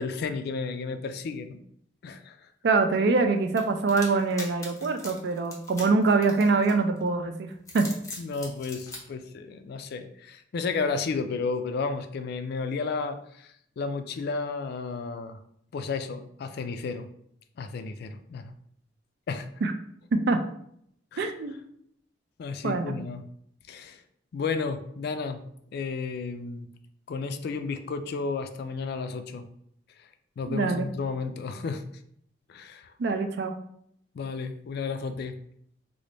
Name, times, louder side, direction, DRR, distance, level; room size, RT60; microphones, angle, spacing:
voice 1, 0.0-1.6 2.0-2.5 8.2-15.4 15.7-17.1 17.6-18.5 19.3-19.5 21.1-21.3 22.4-23.2 23.7-24.0 24.3-25.4 25.7-26.7 27.1-29.5 30.0-30.1 30.4-31.8 32.5-32.9 34.1-35.4, left 4 dB, 60° left, 9 dB, 0.3 m, -32 dB
voice 2, 2.6-7.9 19.6-19.7 20.1-20.4 21.2-21.5 22.6-22.9 30.5-30.9 33.0-33.5, right 3 dB, 60° right, 7 dB, 0.4 m, -24 dB
sound 1, 3.6-7.0 7.5-9.0, left 2 dB, 15° left, 0.6 m, -41 dB
3.3 x 2.0 x 3.8 m, 0.70 s
head